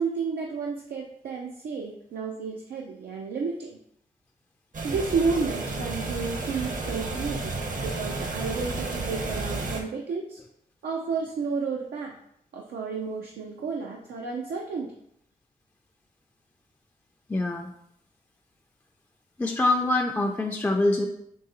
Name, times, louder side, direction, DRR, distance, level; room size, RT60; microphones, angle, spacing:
voice 1, 0.0-3.8 4.8-7.6 7.8-10.4 10.8-12.1 12.5-14.9, right 5 dB, 90° right, 0 dB, 0.4 m, -31 dB
sound 1, 4.7-9.8, right 3 dB, 55° right, 0.7 m, -32 dB
voice 2, 17.3-17.7 19.4-21.1, left 2 dB, 15° left, 2 dB, 0.3 m, -24 dB
3.8 x 3.1 x 2.8 m, 0.74 s
cardioid pair, 55°, 16 cm